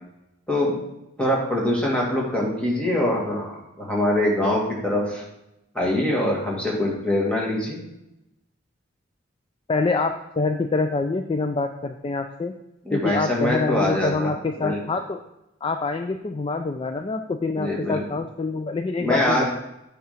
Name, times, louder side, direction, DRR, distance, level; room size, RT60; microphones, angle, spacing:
voice 1, 1.2-5.2 5.7-7.8 12.9-14.3 14.6-14.8 17.6-18.0 19.0-19.5, left 1 dB, 5° left, -3 dB, 1.9 m, -23 dB
voice 2, 9.7-12.5 12.9-15.2 15.6-19.5, left 3 dB, 30° left, 7 dB, 0.3 m, -26 dB
8.5 x 3.6 x 5.7 m, 0.88 s
head